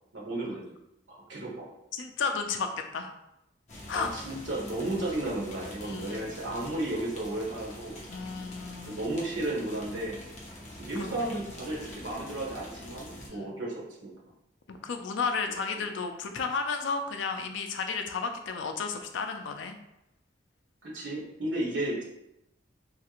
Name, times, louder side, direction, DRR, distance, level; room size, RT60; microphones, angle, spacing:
voice 1, 0.1-0.8 1.1-1.7 3.9-8.0 8.8-10.2 10.8-14.1 15.8-15.9 20.8-22.0, right 1 dB, 80° right, -3 dB, 1.1 m, -33 dB
voice 2, 1.9-3.1 3.9-4.1 5.8-6.3 8.1-9.0 11.0-11.3 13.3-13.6 14.7-19.8, left 5 dB, 75° left, 6 dB, 0.4 m, -33 dB
sound 1, 3.7-13.3, left 1 dB, 35° left, 0.7 m, -45 dB
3.2 x 2.4 x 2.9 m, 0.84 s
head